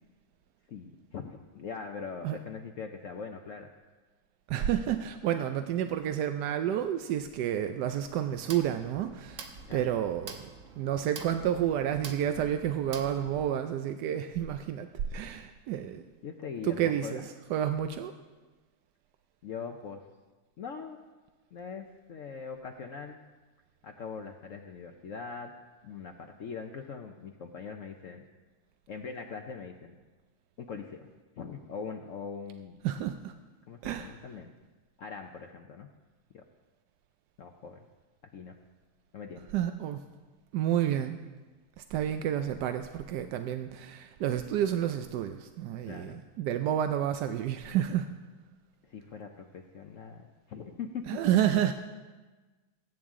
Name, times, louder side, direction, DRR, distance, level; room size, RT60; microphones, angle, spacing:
voice 1, 0.7-3.7 9.7-9.8 16.2-17.3 19.4-20.0 20.6-21.0 21.5-23.2 23.8-25.5 25.8-28.2 28.9-30.0 30.6-31.1 31.4-32.8 33.7-34.5 35.0-35.9 36.3-36.4 37.4-37.8 38.3-38.5 39.1-39.5 45.9-46.2 48.8-51.1 51.5-51.6, left 5 dB, 85° left, 3 dB, 0.7 m, -41 dB
voice 2, 4.5-10.5 10.8-16.0 16.6-18.1 32.8-33.3 33.8-34.2 39.5-40.0 40.5-41.2 41.8-48.1 51.1-51.7, right 10 dB, 75° right, 8 dB, 1.0 m, -30 dB
sound 1, 8.3-13.5, right 5 dB, 50° right, 1.1 m, -46 dB
21.5 x 8.9 x 3.7 m, 1.3 s
omnidirectional pair, 2.3 m